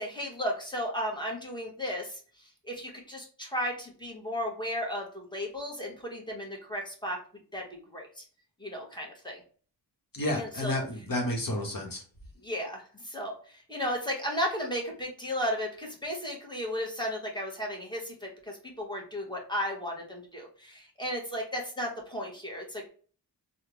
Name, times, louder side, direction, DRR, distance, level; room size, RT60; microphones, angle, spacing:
voice 1, 0.0-7.2 7.5-8.2 8.6-9.4 10.3-10.8 12.4-22.9, equal, 10° left, -1 dB, 1.4 m, -34 dB
voice 2, 10.1-12.0, left 1 dB, 50° left, 0 dB, 1.3 m, -31 dB
3.5 x 2.4 x 3.1 m, 0.42 s
cardioid pair, 50°, 44 cm